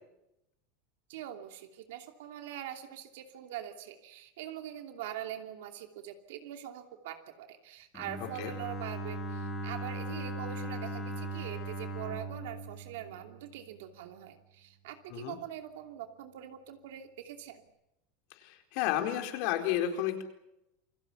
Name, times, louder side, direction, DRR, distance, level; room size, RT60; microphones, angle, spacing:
voice 1, 1.1-17.6, right 11 dB, 75° right, 5 dB, 2.8 m, -43 dB
Bowed string instrument, 7.9-13.9, right 1 dB, 15° left, 5.9 m, -39 dB
voice 2, 18.4-20.2, left 11 dB, 50° left, 5 dB, 4.4 m, -31 dB
28.5 x 22.5 x 7.1 m, 0.86 s
supercardioid pair, 170°, 0 cm